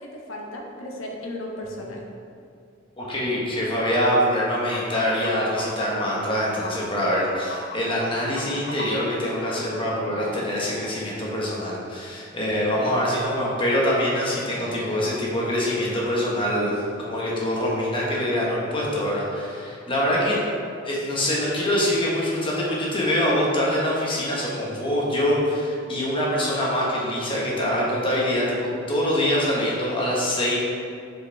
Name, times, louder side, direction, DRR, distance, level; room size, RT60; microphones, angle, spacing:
voice 1, 0.0-2.0, left 1 dB, 85° left, 0 dB, 1.0 m, -35 dB
voice 2, 3.0-20.4 20.8-30.6, equal, 25° left, -5 dB, 1.2 m, -24 dB
sound 1, 4.7-9.8, left 1 dB, 55° left, 0.8 m, -37 dB
Human voice / Animal, 8.0-8.8 10.0-11.0 12.2-13.1 14.2-15.1, right 1 dB, 85° right, 1.5 m, -43 dB
7.3 x 4.7 x 3.4 m, 2.4 s
head